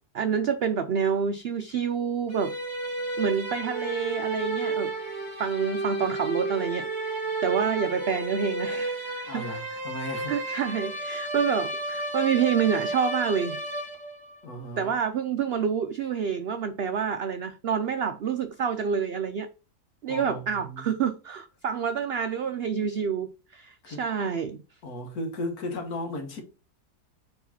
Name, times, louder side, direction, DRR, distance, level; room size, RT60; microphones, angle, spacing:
voice 1, 0.1-2.5 3.2-4.9 5.4-9.6 10.3-13.6 14.8-19.5 20.0-24.6, right 7 dB, 90° right, 0.5 m, -28 dB
sound 1, 2.3-14.4, right 2 dB, 20° right, 1.4 m, -32 dB
voice 2, 9.3-10.4 14.4-14.9 20.1-20.9 23.8-24.1 24.8-26.4, left 1 dB, 70° left, 1.8 m, -35 dB
4.7 x 3.8 x 5.6 m
omnidirectional pair, 1.6 m